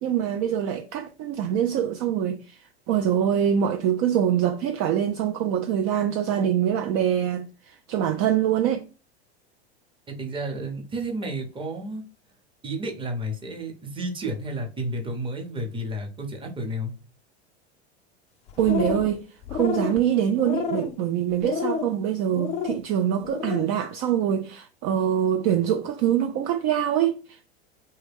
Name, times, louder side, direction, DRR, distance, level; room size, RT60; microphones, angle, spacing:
voice 1, 0.0-8.8 18.6-19.2 19.5-27.5, right 9 dB, 45° right, 0.4 m, -24 dB
voice 2, 10.1-12.0 12.6-17.0, right 1 dB, 15° right, 0.8 m, -31 dB
sound 1, 18.5-19.1 19.4-20.0 20.4-20.9 21.4-21.9 22.3-22.8 23.2-23.7, left 6 dB, 20° left, 0.3 m, -29 dB
3.3 x 2.2 x 3.4 m
hypercardioid pair, 105°, 33 cm